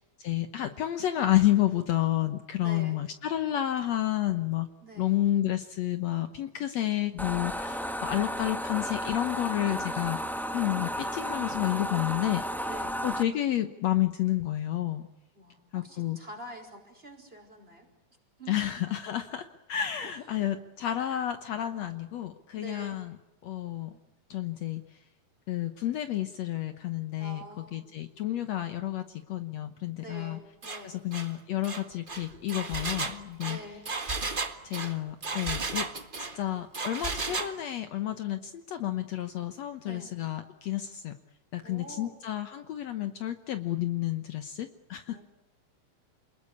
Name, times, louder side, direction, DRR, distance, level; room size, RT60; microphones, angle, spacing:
voice 1, 0.2-4.7 5.0-10.2 10.5-12.4 13.0-15.1 15.7-16.2 18.5-23.2 23.4-23.9 24.3-24.8 25.5-27.4 27.7-30.4 30.8-33.6 34.6-35.9 36.3-41.1 41.5-45.2, left 13 dB, 65° left, 9 dB, 2.1 m, -30 dB
voice 2, 2.6-3.0 4.8-5.2 12.6-13.0 15.4-17.9 18.4-18.6 20.0-20.3 22.5-23.0 23.9-24.0 27.1-27.8 30.0-31.0 33.5-33.9 39.8-40.1 41.6-42.2 45.1-45.2, right 1 dB, 15° right, 3 dB, 5.3 m, -46 dB
sound 1, 7.2-13.2, equal, ahead, 0.8 m, -33 dB
Engine, 30.6-30.8 31.1-31.3 31.6-36.4 36.7-37.5, right 3 dB, 30° right, 0.9 m, -34 dB
28.5 x 21.0 x 8.5 m, 0.92 s
omnidirectional pair, 3.5 m